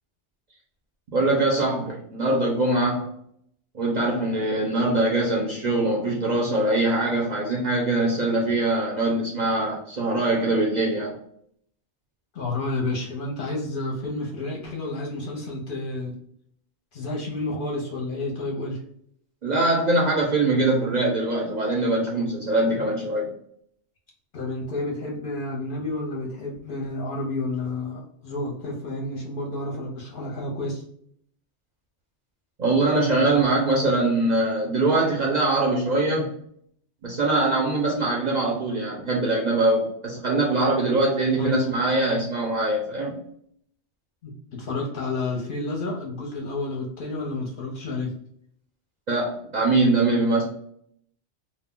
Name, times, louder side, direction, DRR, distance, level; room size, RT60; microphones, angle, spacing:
voice 1, 1.1-3.1 3.7-11.2 19.4-23.3 32.6-36.4 37.0-43.2 49.1-50.4, right 2 dB, 50° right, -3 dB, 0.6 m, -23 dB
voice 2, 12.3-16.1 16.9-18.8 24.3-30.8 41.4-41.6 44.2-48.1, left 2 dB, 55° left, -2 dB, 0.7 m, -30 dB
2.3 x 2.1 x 3.5 m, 0.67 s
omnidirectional pair, 1.2 m